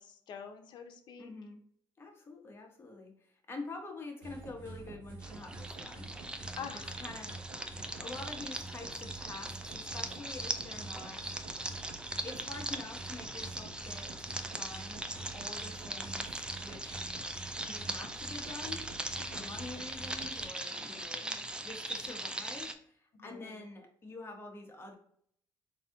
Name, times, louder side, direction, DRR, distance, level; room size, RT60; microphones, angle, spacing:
voice 1, 0.0-1.3 6.6-6.9 17.6-17.8 19.2-19.6 20.7-21.4 23.1-23.7, left 6 dB, 65° left, 5 dB, 0.7 m, -47 dB
voice 2, 1.2-1.6 2.0-6.1 7.0-7.5 7.8-11.3 12.2-17.1 17.7-18.9 19.3-24.9, left 3 dB, 30° left, 2 dB, 1.0 m, -47 dB
sound 1, 4.2-20.5, right 3 dB, 85° right, 1.1 m, -48 dB
sound 2, 5.2-22.7, right 1 dB, 10° right, 0.4 m, -40 dB
4.0 x 2.7 x 3.6 m, 0.66 s
cardioid pair, 105°, 8 cm